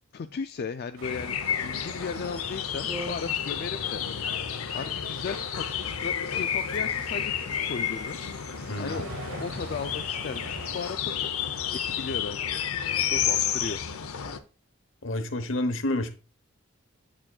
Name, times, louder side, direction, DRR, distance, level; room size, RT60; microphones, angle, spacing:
voice 1, 0.1-4.0 4.7-8.2 8.8-9.1 9.4-11.3 11.8-12.6 13.1-13.8, left 5 dB, 45° left, 9 dB, 0.3 m, -36 dB
sound 1, 1.0-14.4, left 8 dB, 85° left, 0.7 m, -31 dB
sound 2, 1.0-10.9, right 1 dB, 75° right, 1.2 m, -45 dB
sound 3, 2.9-4.0 5.0-5.4 6.0-6.1 6.3-6.8 7.1-7.2 7.7-8.4, right 1 dB, 20° right, 0.6 m, -43 dB
voice 2, 15.0-16.1, left 1 dB, 65° left, 9 dB, 1.0 m, -29 dB
8.8 x 7.3 x 2.3 m, 0.33 s
head